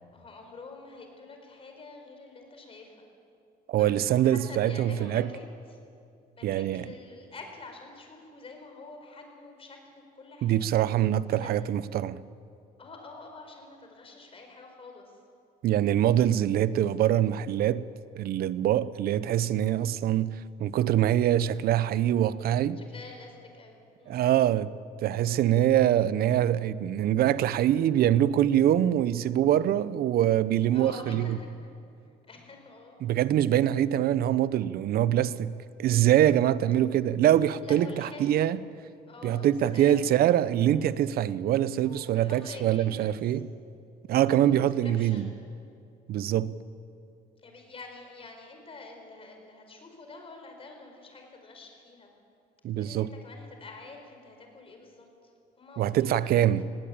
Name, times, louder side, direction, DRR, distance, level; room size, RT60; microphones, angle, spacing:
voice 1, 0.1-3.1 3.8-5.8 6.4-10.6 11.4-11.7 12.8-15.2 22.8-24.3 30.7-31.7 32.2-33.0 37.6-38.5 39.1-40.1 41.8-43.4 44.1-45.4 47.4-52.1 52.7-56.6, left 3 dB, 35° left, 4.8 m, -47 dB
voice 2, 3.7-5.3 6.4-6.9 10.4-12.2 15.6-17.9 18.1-22.8 24.1-24.7 25.0-31.4 33.0-35.5 35.8-38.6 39.2-43.5 44.1-45.3 46.1-46.5 52.6-53.1 55.8-56.6, right 11 dB, 65° right, 0.7 m, -24 dB
19.5 x 17.0 x 8.8 m
cardioid pair, 110°, 17 cm